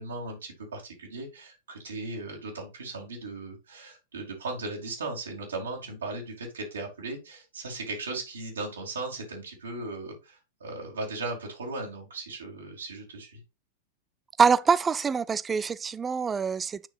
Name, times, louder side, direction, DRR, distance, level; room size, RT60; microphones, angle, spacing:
voice 1, 0.0-13.4, right 2 dB, 70° right, 2.5 m, -37 dB
voice 2, 14.4-16.9, right 5 dB, 20° right, 0.4 m, -24 dB
8.9 x 5.7 x 2.4 m
figure-of-eight pair, 90°, 0 cm